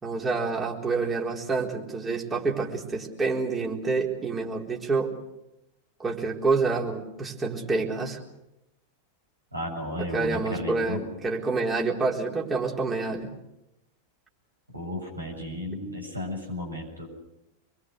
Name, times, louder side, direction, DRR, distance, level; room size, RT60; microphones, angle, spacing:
voice 1, 0.0-5.1 6.0-8.2 10.0-13.3, right 4 dB, 15° right, -1 dB, 4.0 m, -28 dB
voice 2, 9.5-11.0 14.7-17.1, left 1 dB, 80° right, 1 dB, 7.4 m, -33 dB
26.0 x 22.0 x 6.5 m, 0.90 s
figure-of-eight pair, 90°, 0 cm